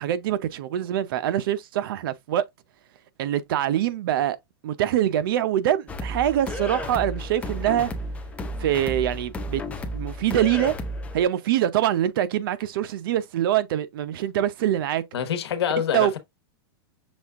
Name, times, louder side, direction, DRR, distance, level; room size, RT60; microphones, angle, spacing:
voice 1, 0.0-2.4 3.2-4.4 4.6-7.9 8.6-9.6 9.9-10.7 11.1-15.0 15.9-16.2, right 11 dB, 60° right, 0.6 m, -24 dB
sound 1, 5.9-11.2, left 1 dB, 10° left, 0.5 m, -33 dB
voice 2, 15.1-16.2, left 9 dB, 90° left, 1.2 m, -26 dB
6.2 x 2.4 x 3.5 m
supercardioid pair, 160°, 13 cm